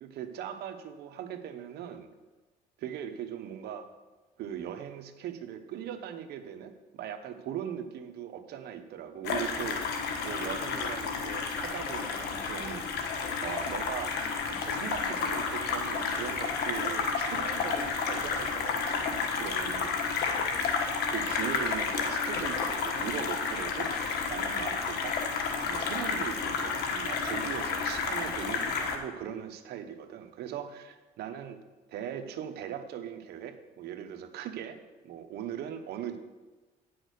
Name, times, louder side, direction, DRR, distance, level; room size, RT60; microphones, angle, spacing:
voice 1, 0.0-2.1 2.8-3.9 4.4-9.8 10.2-12.8 13.4-14.2 14.5-19.9 21.1-23.9 24.3-25.2 25.7-31.6 31.9-34.8 35.0-36.2, right 9 dB, 75° right, 7 dB, 1.0 m, -39 dB
sound 1, 9.2-29.0, left 5 dB, 75° left, 1.4 m, -31 dB
9.1 x 6.3 x 6.4 m, 1.2 s
cardioid pair, 110°, 17 cm